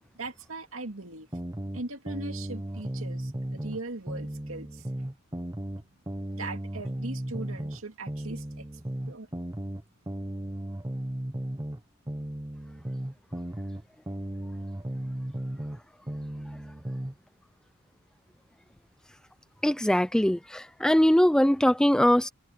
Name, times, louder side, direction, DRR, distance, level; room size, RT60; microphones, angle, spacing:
voice 1, 0.1-1.3 1.7-4.9 6.3-8.7 9.1-9.3, right 2 dB, 65° right, 2.4 m, -39 dB
sound 1, 1.3-3.8 4.1-7.8 8.1-11.8 12.1-15.8 16.1-17.1, right 1 dB, 15° right, 0.9 m, -35 dB
voice 2, 19.6-22.3, equal, 5° left, 0.4 m, -22 dB
head